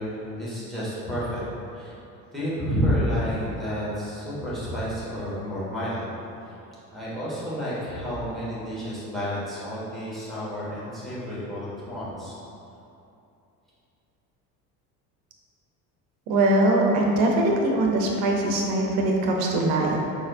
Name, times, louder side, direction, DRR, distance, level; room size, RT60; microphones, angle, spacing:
voice 1, 0.0-1.4 1.7-1.9 2.3-6.1 6.9-12.3, equal, ahead, -9 dB, 1.3 m, -30 dB
voice 2, 16.3-20.0, right 1 dB, 50° right, 0 dB, 0.7 m, -22 dB
4.0 x 2.9 x 2.7 m, 2.8 s
figure-of-eight pair, 60°, 49 cm